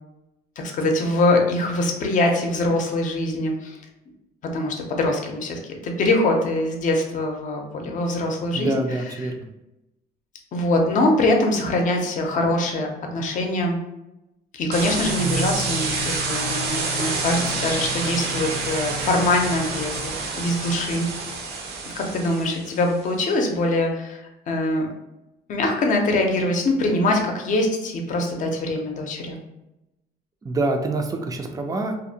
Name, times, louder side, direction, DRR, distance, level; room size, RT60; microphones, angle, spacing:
voice 1, 0.6-3.8 4.5-9.3 10.5-13.8 14.5-21.1 22.0-24.9 25.5-29.4, left 2 dB, 50° left, 2 dB, 0.6 m, -23 dB
voice 2, 8.5-9.5 21.5-21.8 30.4-32.0, right 2 dB, 20° right, 4 dB, 0.4 m, -26 dB
sound 1, 14.7-22.9, right 3 dB, 70° right, 0.6 m, -28 dB
2.6 x 2.1 x 2.7 m, 0.93 s
cardioid pair, 110°, 17 cm